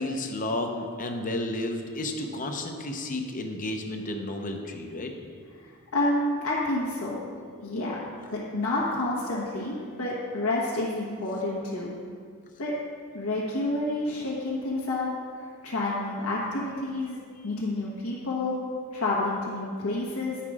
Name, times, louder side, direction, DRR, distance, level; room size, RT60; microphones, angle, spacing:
voice 1, 0.0-5.1, left 1 dB, 35° left, 4 dB, 0.8 m, -32 dB
voice 2, 5.6-7.2 7.6-8.0 8.3-11.9 12.6-12.8 13.1-15.1 15.3-18.6 18.9-20.4, left 2 dB, 75° left, -6 dB, 1.3 m, -29 dB
10.5 x 5.8 x 4.8 m, 2.1 s
head